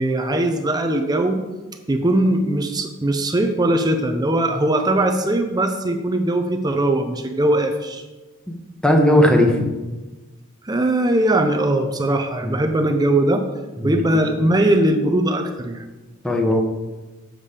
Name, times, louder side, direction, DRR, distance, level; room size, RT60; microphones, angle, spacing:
voice 1, 0.0-1.5 1.9-8.0 10.6-13.4 13.8-15.9, right 1 dB, 20° right, 5 dB, 0.6 m, -20 dB
voice 2, 8.8-9.6 12.4-12.6 13.8-14.0 16.2-16.6, left 1 dB, 5° left, 1 dB, 1.0 m, -16 dB
7.4 x 5.1 x 6.7 m, 1.2 s
head